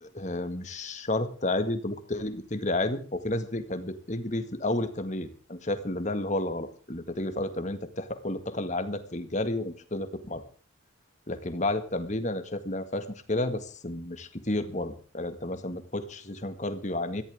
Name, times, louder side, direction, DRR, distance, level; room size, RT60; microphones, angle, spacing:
voice 1, 0.0-10.5 11.3-17.2, left 1 dB, 35° left, 9 dB, 1.9 m, -31 dB
23.0 x 15.0 x 3.7 m, 0.37 s
head